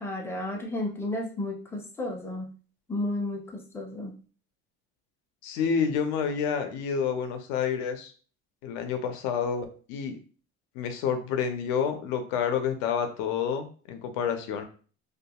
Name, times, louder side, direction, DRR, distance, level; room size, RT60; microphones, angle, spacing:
voice 1, 0.0-2.5 2.9-4.1, left 1 dB, 10° left, 0 dB, 0.4 m, -32 dB
voice 2, 5.4-8.1 8.6-10.2 10.7-14.6, left 7 dB, 90° left, 6 dB, 0.6 m, -29 dB
2.4 x 2.3 x 2.8 m, 0.40 s
cardioid pair, 150°, 29 cm